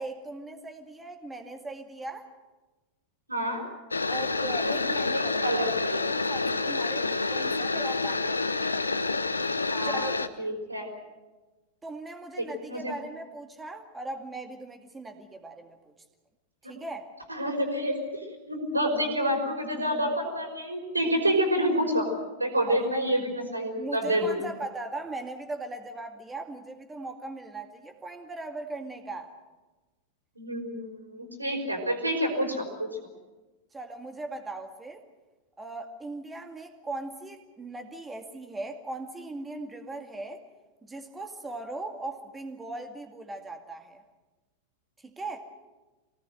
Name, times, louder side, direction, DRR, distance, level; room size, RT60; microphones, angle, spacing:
voice 1, 0.0-2.3 4.1-5.7 6.0-8.4 9.8-10.5 11.8-15.9 16.6-17.1 22.7-22.8 23.8-29.3 33.7-35.0 35.6-40.4 40.8-44.0 45.0-45.5, right 2 dB, 15° right, 5 dB, 2.2 m, -39 dB
voice 2, 3.3-3.6 4.6-6.0 9.7-10.1 10.4-11.0 12.4-12.9 17.3-22.1 22.4-24.4 30.4-32.9, equal, 85° right, 3 dB, 5.1 m, -28 dB
sound 1, 3.9-10.3, left 3 dB, 80° left, 1.0 m, -28 dB
25.5 x 18.5 x 7.9 m, 1.2 s
figure-of-eight pair, 90°, 0 cm